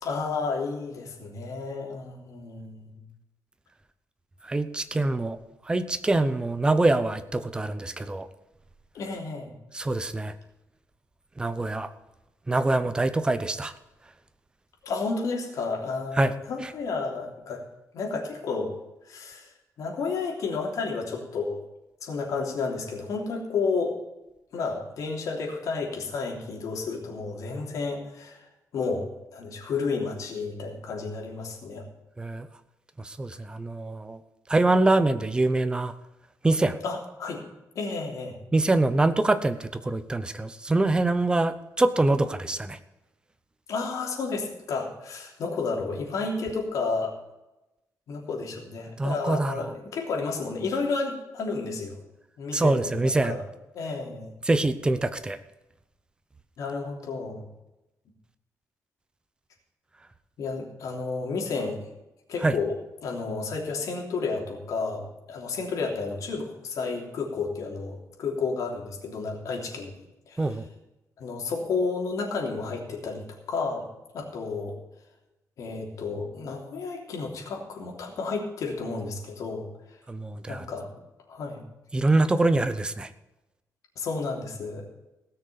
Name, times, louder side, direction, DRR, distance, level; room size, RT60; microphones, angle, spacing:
voice 1, 0.0-3.0 8.9-9.5 14.8-17.6 17.9-18.7 19.1-19.5 19.8-21.6 22.0-24.0 24.5-28.5 28.7-31.9 36.8-37.4 37.7-38.4 43.7-47.1 48.1-52.0 52.4-53.4 53.7-54.3 56.6-57.4 60.4-61.8 62.3-62.8 63.0-69.9 70.3-70.5 71.2-73.9 74.1-74.8 75.6-79.7 80.5-80.9 81.3-81.6 83.9-84.8, left 4 dB, 70° left, 0 dB, 3.3 m, -31 dB
voice 2, 4.4-5.4 5.7-8.3 9.7-10.3 11.4-11.9 12.5-13.7 16.1-16.7 32.2-32.5 33.0-34.2 34.5-35.9 36.4-36.8 38.5-42.8 49.0-49.7 52.5-53.4 54.4-55.4 62.4-62.6 70.4-70.6 80.1-80.7 81.9-83.1, right 2 dB, 15° right, 12 dB, 0.8 m, -24 dB
17.0 x 6.6 x 7.0 m, 0.97 s
cardioid pair, 150°, 6 cm